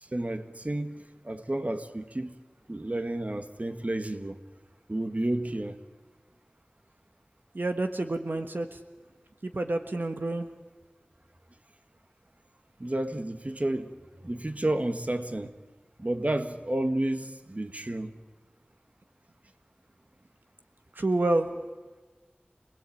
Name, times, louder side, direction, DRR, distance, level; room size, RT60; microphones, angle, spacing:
voice 1, 0.0-2.3 2.7-4.4 4.9-5.8 12.8-15.5 16.0-18.1, right 1 dB, 45° right, 1.7 m, -31 dB
voice 2, 7.5-8.8 9.4-10.5 20.9-21.5, right 2 dB, 70° right, 1.4 m, -28 dB
27.0 x 18.5 x 8.7 m
wide cardioid pair, 40°, 3 cm